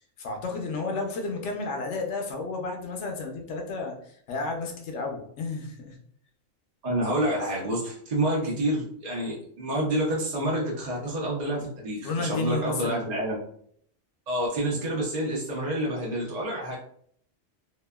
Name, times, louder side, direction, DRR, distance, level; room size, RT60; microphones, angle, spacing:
voice 1, 0.2-6.0 12.0-13.1, left 3 dB, 70° left, 2 dB, 0.9 m, -32 dB
voice 2, 6.8-13.4 14.3-16.7, right 1 dB, 50° right, -4 dB, 0.5 m, -28 dB
2.7 x 2.3 x 2.2 m, 0.64 s
omnidirectional pair, 1.3 m